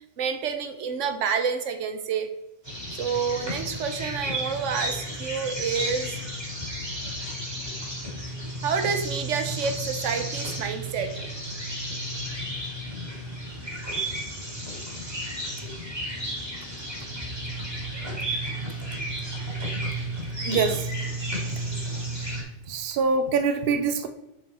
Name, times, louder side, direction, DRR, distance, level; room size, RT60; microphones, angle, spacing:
voice 1, 0.2-2.3 2.9-6.2 8.6-11.2, right 6 dB, 90° right, 8 dB, 1.1 m, -28 dB
sound 1, 2.6-22.4, right 1 dB, 20° right, 2.5 m, -33 dB
voice 2, 20.4-20.9 21.6-21.7 22.7-24.1, right 4 dB, 55° right, 8 dB, 0.8 m, -24 dB
6.5 x 4.5 x 4.2 m, 0.91 s
omnidirectional pair, 1.2 m